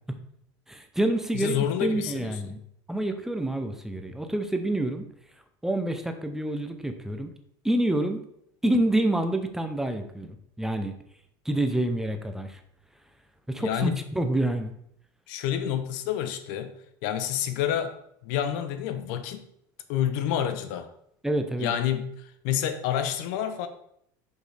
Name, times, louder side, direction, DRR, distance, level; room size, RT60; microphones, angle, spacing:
voice 1, 0.7-2.6 2.9-5.0 5.6-7.3 7.6-8.2 8.6-10.9 11.5-12.6 13.5-14.7 21.2-21.7, right 1 dB, 5° right, 0.6 m, -27 dB
voice 2, 1.3-2.6 13.6-14.0 15.3-16.7 17.0-18.0 18.2-19.4 19.9-20.9 21.6-23.7, left 10 dB, 75° left, 0.7 m, -28 dB
6.0 x 5.3 x 3.3 m
supercardioid pair, 115°, 10 cm